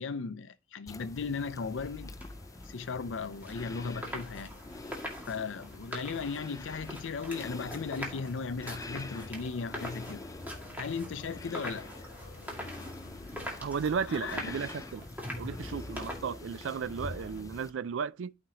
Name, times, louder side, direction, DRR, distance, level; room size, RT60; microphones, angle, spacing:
voice 1, 0.0-2.1 2.7-4.5 5.3-10.2 10.8-11.9 14.1-14.6, left 5 dB, 75° left, 0.5 m, -36 dB
sound 1, 0.9-17.7, left 2 dB, 20° left, 0.4 m, -45 dB
sound 2, 1.4-17.4, equal, 10° right, 2.1 m, -45 dB
sound 3, 7.1-12.9, left 2 dB, 35° left, 3.5 m, -55 dB
voice 2, 13.6-15.1 15.4-18.3, right 6 dB, 75° right, 0.4 m, -34 dB
13.0 x 5.0 x 2.9 m
head